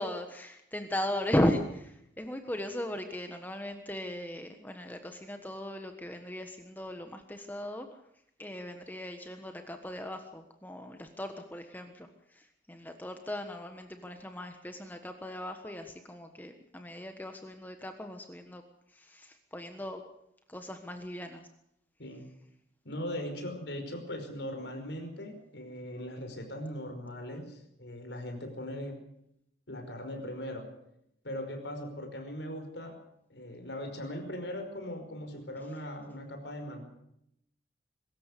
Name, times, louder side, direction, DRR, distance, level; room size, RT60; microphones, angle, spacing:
voice 1, 0.0-7.9 8.4-18.6 18.9-20.0 20.5-21.5, left 1 dB, 10° left, 6 dB, 1.3 m, -37 dB
voice 2, 22.9-29.0 29.7-30.7 31.2-33.0 33.3-36.8, left 1 dB, 75° left, 5 dB, 5.2 m, -39 dB
23.5 x 13.5 x 8.4 m, 0.76 s
head